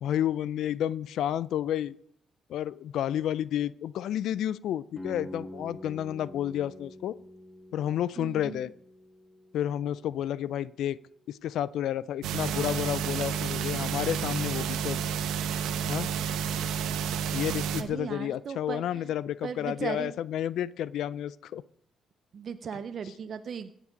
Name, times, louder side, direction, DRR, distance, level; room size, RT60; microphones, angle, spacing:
voice 1, 0.0-1.9 2.5-7.2 7.7-8.7 9.5-11.0 11.3-15.0 15.9-16.1 17.3-21.6, left 11 dB, 80° left, 19 dB, 0.3 m, -31 dB
sound 1, 5.0-10.7, left 1 dB, 15° left, 1.5 m, -46 dB
voice 2, 8.2-8.6 17.8-19.1 19.4-20.1 22.3-23.7, right 6 dB, 55° right, 10 dB, 0.5 m, -37 dB
sound 2, 12.2-17.8, right 8 dB, 85° right, 0.9 m, -30 dB
16.5 x 7.4 x 5.2 m, 0.71 s
cardioid pair, 90°, 0 cm